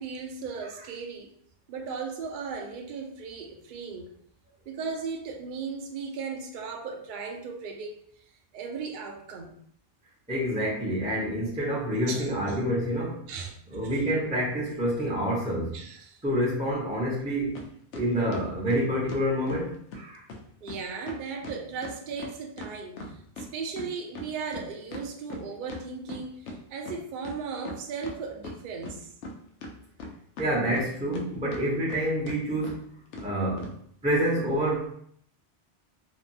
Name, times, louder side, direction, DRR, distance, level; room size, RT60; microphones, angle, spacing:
voice 1, 0.0-1.3 1.7-4.1 4.7-8.0 8.5-9.6 12.1-12.7 13.3-14.2 15.7-16.2 20.6-29.1, right 5 dB, 60° right, 3 dB, 0.6 m, -37 dB
voice 2, 10.3-13.2 13.7-15.8 16.2-17.6 17.9-20.2 30.4-32.8 33.2-33.7 34.0-34.9, equal, 10° right, -6 dB, 0.5 m, -27 dB
sound 1, 17.5-17.7 17.9-19.6 19.9-20.0 20.3-20.4 20.7-20.8 21.1-23.5 23.8-26.6 26.8-26.9 27.2-28.2 28.4-29.3 29.6-31.2 31.5-32.0 32.3-32.4 32.6-32.8 33.1-33.3 33.6-33.7, left 2 dB, 85° left, 0.9 m, -39 dB
2.8 x 2.2 x 2.6 m, 0.62 s
omnidirectional pair, 1.2 m